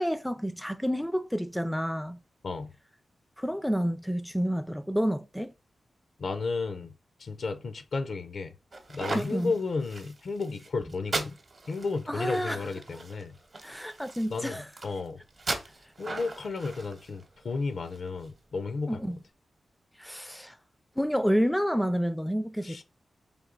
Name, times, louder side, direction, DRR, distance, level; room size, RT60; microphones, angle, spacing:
voice 1, 0.0-2.2 3.4-5.5 9.1-9.5 12.1-12.7 13.6-14.7 18.9-19.2 20.0-20.6 21.0-22.8, equal, 5° left, 0.3 m, -29 dB
voice 2, 6.2-6.9 7.2-8.5 8.9-11.4 11.7-13.4 14.3-15.2 16.0-19.0 22.6-22.8, left 4 dB, 70° left, 0.5 m, -33 dB
sound 1, 8.7-18.3, right 3 dB, 50° right, 0.8 m, -39 dB
3.3 x 2.7 x 3.8 m
cardioid pair, 55°, 0 cm